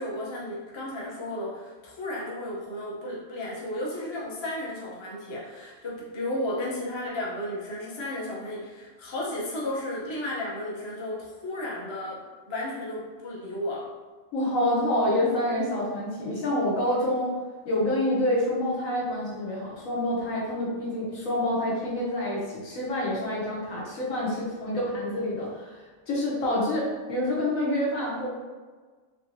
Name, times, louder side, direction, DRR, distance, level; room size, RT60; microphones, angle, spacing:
voice 1, 0.0-13.9, left 1 dB, 30° left, -4 dB, 0.5 m, -34 dB
voice 2, 14.3-17.4 17.6-25.8 26.1-28.3, left 1 dB, 75° left, -5 dB, 1.4 m, -27 dB
3.5 x 2.8 x 2.6 m, 1.4 s
omnidirectional pair, 1.4 m